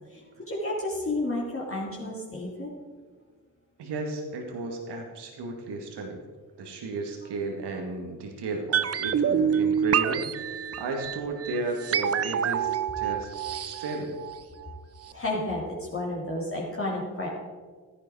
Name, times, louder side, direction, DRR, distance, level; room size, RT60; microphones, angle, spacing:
voice 1, 0.1-2.7 15.1-17.4, left 1 dB, 25° left, -5 dB, 3.1 m, -31 dB
voice 2, 3.8-6.2 6.6-12.7 13.0-13.3 13.6-14.1, right 3 dB, 55° right, 2 dB, 2.1 m, -34 dB
sound 1, 8.7-14.8 15.0-15.1, right 8 dB, 30° right, 0.6 m, -27 dB
14.0 x 10.5 x 4.8 m, 1.5 s
hypercardioid pair, 45°, 49 cm